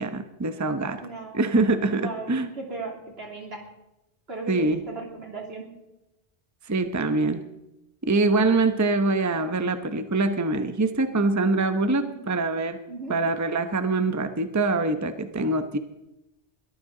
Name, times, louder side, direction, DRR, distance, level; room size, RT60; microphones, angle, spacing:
voice 1, 0.0-1.0 1.3-2.5 4.5-4.8 6.7-7.4 8.0-12.8 13.1-15.8, right 3 dB, 20° right, 9 dB, 0.8 m, -24 dB
voice 2, 1.0-1.4 1.9-3.7 4.3-5.7 11.8-12.2 12.9-13.2, right 3 dB, 75° right, 0 dB, 3.3 m, -37 dB
22.0 x 13.5 x 3.9 m, 0.94 s
omnidirectional pair, 1.1 m